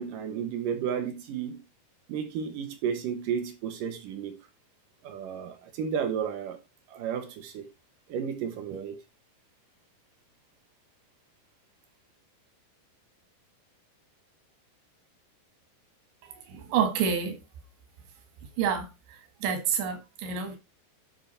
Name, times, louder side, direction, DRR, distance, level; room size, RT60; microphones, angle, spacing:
voice 1, 0.0-1.6 2.1-4.4 5.0-6.6 6.9-7.7 8.1-9.0, right 7 dB, 65° right, 2.3 m, -32 dB
voice 2, 16.2-17.4 18.6-20.6, right 7 dB, 90° right, 4.2 m, -29 dB
11.0 x 6.1 x 4.2 m
omnidirectional pair, 5.1 m